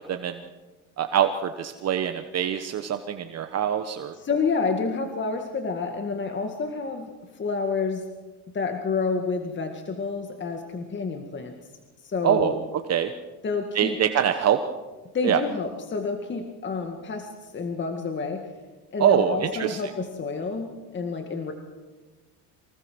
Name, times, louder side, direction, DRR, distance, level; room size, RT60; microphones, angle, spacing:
voice 1, 0.1-0.4 1.0-4.1 12.2-12.5 12.9-13.1 13.7-14.6 15.2-15.4 19.0-19.8, right 9 dB, 45° right, 7 dB, 1.2 m, -24 dB
voice 2, 4.1-8.0 8.5-11.5 12.0-12.6 13.4-14.0 15.1-18.5 18.9-21.5, left 4 dB, 30° left, 5 dB, 2.0 m, -29 dB
25.0 x 18.0 x 6.2 m, 1.2 s
cardioid pair, 115°, 35 cm